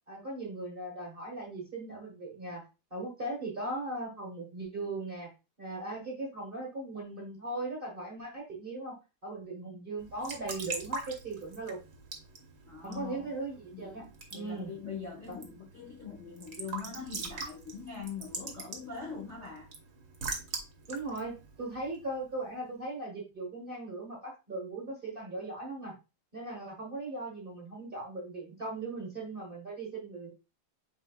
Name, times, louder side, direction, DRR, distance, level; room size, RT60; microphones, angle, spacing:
voice 1, 0.1-2.6 2.9-5.3 5.6-8.9 9.2-11.8 12.8-14.0 14.3-14.7 15.3-15.4 20.9-25.9 26.3-30.3, right 2 dB, 30° right, 1.1 m, -38 dB
Raindrop / Drip / Trickle dribble, 10.0-22.5, right 4 dB, 50° right, 1.1 m, -43 dB
voice 2, 12.7-13.3 13.7-19.7, left 6 dB, 45° left, 1.0 m, -42 dB
5.4 x 4.1 x 2.3 m
omnidirectional pair, 2.4 m